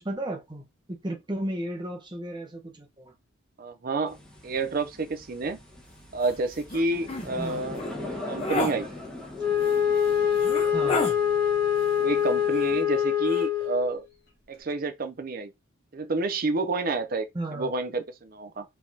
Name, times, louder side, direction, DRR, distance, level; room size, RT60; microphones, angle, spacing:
voice 1, 0.0-3.1 7.4-7.7 8.3-8.5 10.7-11.1 17.3-17.7, right 1 dB, 20° right, 0.8 m, -34 dB
voice 2, 3.6-4.2 4.4-5.6 6.1-8.9 10.8-11.1 12.0-14.0 14.5-15.5 15.9-17.3 17.5-18.6, right 3 dB, 45° right, 0.5 m, -29 dB
sound 1, 4.1-12.8, left 2 dB, 5° left, 1.2 m, -41 dB
sound 2, 6.2-6.3 6.7-6.8 7.1-7.3 7.7-7.9 8.4-8.7 9.7-9.8 10.4-11.2 12.5-13.0 13.3-13.4, left 2 dB, 30° left, 0.9 m, -30 dB
Wind instrument woodwind instrument, 9.4-14.0, left 9 dB, 50° left, 1.7 m, -24 dB
5.0 x 3.4 x 2.8 m
head